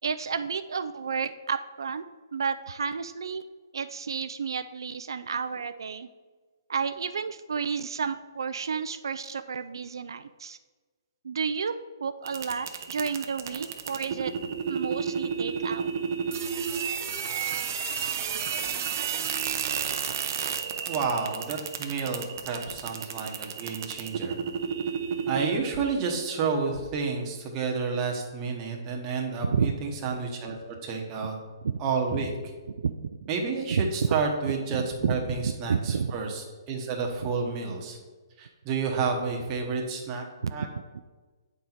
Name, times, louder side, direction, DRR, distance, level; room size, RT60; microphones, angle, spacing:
voice 1, 0.0-2.0 2.3-3.4 3.7-6.1 6.7-10.6 11.2-11.7 12.0-14.3 14.7-15.9 29.4-29.7 31.6-31.7 32.8-32.9 33.2-33.3 33.7-34.2 34.7-35.1 35.4-36.1 37.2-37.3 40.4-40.5, right 6 dB, 80° right, 11 dB, 0.3 m, -31 dB
sound 1, 12.2-25.6, right 7 dB, 40° right, 0.6 m, -31 dB
voice 2, 20.9-24.4 25.3-31.3 31.8-32.3 33.3-38.0 38.4-40.2 40.5-40.7, right 5 dB, 20° right, 0 dB, 1.0 m, -30 dB
8.4 x 4.4 x 4.0 m, 1.3 s
hypercardioid pair, 165°, 2 cm